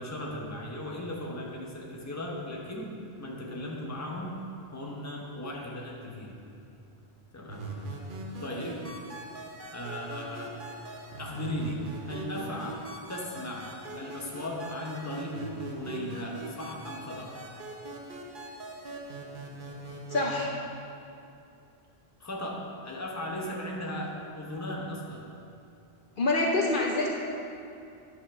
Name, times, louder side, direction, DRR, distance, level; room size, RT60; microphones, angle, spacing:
voice 1, 0.0-2.9 3.2-4.4 4.7-6.4 7.3-7.7 8.4-8.8 9.7-10.6 11.2-12.8 13.1-17.4 22.2-25.3, left 1 dB, 15° left, -2 dB, 1.1 m, -37 dB
sound 1, 7.5-20.5, right 2 dB, 55° right, 1.1 m, -41 dB
voice 2, 20.1-20.6 26.2-27.1, left 2 dB, 55° left, -2 dB, 0.9 m, -26 dB
9.3 x 5.6 x 6.1 m, 2.6 s
omnidirectional pair, 1.1 m